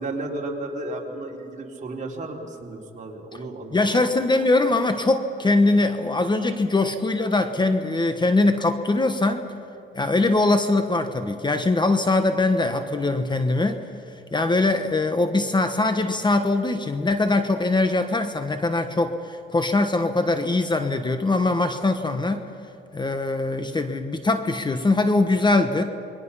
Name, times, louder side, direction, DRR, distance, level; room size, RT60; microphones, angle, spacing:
voice 1, 0.0-4.1 10.1-10.3, right 2 dB, 40° right, 0 dB, 3.6 m, -33 dB
voice 2, 3.7-9.5 9.9-13.8 14.3-22.4 22.9-25.8, left 2 dB, 20° left, 8 dB, 1.2 m, -22 dB
28.5 x 22.0 x 5.7 m, 2.6 s
cardioid pair, 90°, 20 cm